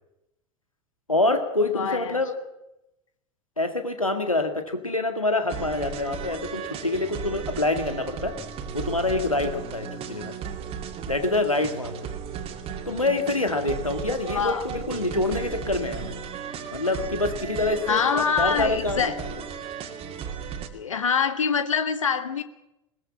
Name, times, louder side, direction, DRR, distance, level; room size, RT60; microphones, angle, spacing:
voice 1, 1.1-2.3 3.6-8.3 8.7-10.3 11.1-12.1 12.9-16.2 16.7-19.3, left 2 dB, 85° left, 7 dB, 2.1 m, -26 dB
voice 2, 1.7-2.2 14.3-14.7 17.9-19.2 20.7-22.4, left 6 dB, 70° left, 11 dB, 1.7 m, -25 dB
sound 1, 5.5-20.7, right 7 dB, 35° right, 2.5 m, -35 dB
21.0 x 20.0 x 7.4 m, 0.89 s
figure-of-eight pair, 80°, 17 cm